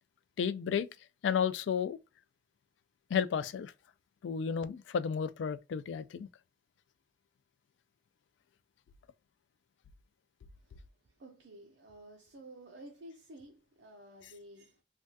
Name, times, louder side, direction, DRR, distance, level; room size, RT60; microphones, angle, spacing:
voice 1, 0.4-0.9 1.2-2.0 3.1-3.7 4.2-6.3, left 7 dB, 75° left, 0.3 m, -32 dB
voice 2, 11.2-14.8, right 1 dB, 70° right, 0.6 m, -52 dB
3.4 x 2.3 x 2.6 m
head